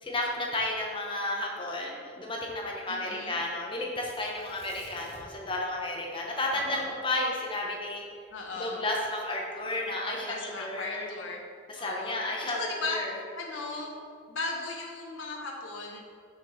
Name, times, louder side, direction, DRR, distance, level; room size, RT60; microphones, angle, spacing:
voice 1, 0.0-8.0 8.6-11.1 11.7-13.1, left 1 dB, 25° left, -2 dB, 1.0 m, -32 dB
voice 2, 2.9-3.4 6.5-6.9 8.3-8.8 10.1-11.4 11.8-13.0 13.4-13.9 14.3-16.0, left 3 dB, 85° left, 0 dB, 0.8 m, -37 dB
Tearing, 4.1-5.5 5.8-5.9 6.4-8.8 9.5-10.0, right 1 dB, 75° right, 1.6 m, -54 dB
5.9 x 4.7 x 4.3 m, 2.3 s
head